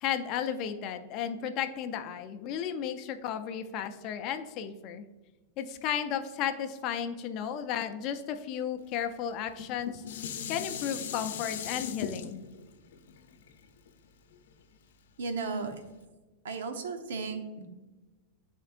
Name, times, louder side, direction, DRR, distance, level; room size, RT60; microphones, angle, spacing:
voice 1, 0.0-5.0 5.6-10.0 10.5-12.4, left 9 dB, 30° left, 8 dB, 0.4 m, -34 dB
Dishes pots and pans, 9.5-14.7 15.3-15.4, left 8 dB, 75° left, 0.6 m, -39 dB
voice 2, 15.2-15.8 16.4-17.7, right 4 dB, 85° right, 6 dB, 1.0 m, -35 dB
10.5 x 4.4 x 2.5 m, 1.2 s
supercardioid pair, 175°, 0 cm